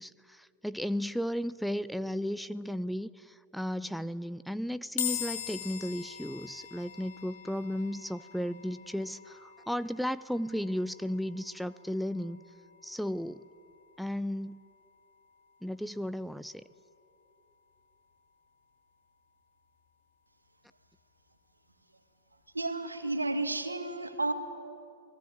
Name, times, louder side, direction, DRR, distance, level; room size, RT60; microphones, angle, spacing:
voice 1, 0.0-12.4 12.8-13.5 14.0-14.6 15.6-16.6, equal, ahead, 15 dB, 0.5 m, -34 dB
sound 1, 5.0-18.3, left 10 dB, 60° left, 2.6 m, -44 dB
voice 2, 22.5-24.3, right 2 dB, 80° right, 8 dB, 2.0 m, -32 dB
29.0 x 20.0 x 9.0 m, 2.5 s
figure-of-eight pair, 90°, 0 cm